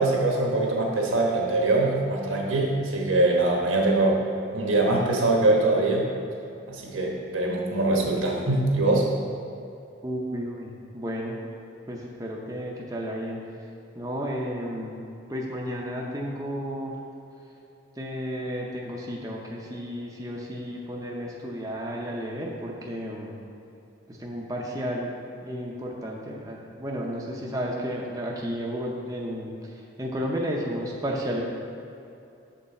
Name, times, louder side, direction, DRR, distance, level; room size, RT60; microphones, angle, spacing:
voice 1, 0.0-4.2 4.5-6.1 6.7-9.1, right 2 dB, 85° right, -1 dB, 1.2 m, -23 dB
voice 2, 10.0-11.4 11.9-13.6 13.9-15.0 15.3-17.0 18.0-23.4 24.1-25.1 25.4-31.4, equal, 15° right, -2 dB, 0.6 m, -32 dB
7.0 x 5.5 x 4.1 m, 2.7 s
head